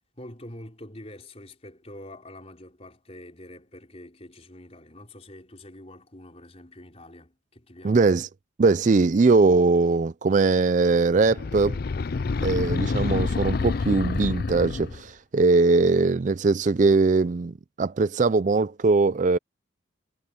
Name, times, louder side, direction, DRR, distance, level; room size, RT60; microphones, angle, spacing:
voice 1, 0.1-8.0, left 1 dB, 30° left, 4.3 m, -45 dB
voice 2, 7.8-8.3 8.6-11.8 12.4-19.4, right 3 dB, 35° right, 0.4 m, -21 dB
sound 1, 11.2-15.1, left 4 dB, 45° left, 0.4 m, -27 dB
head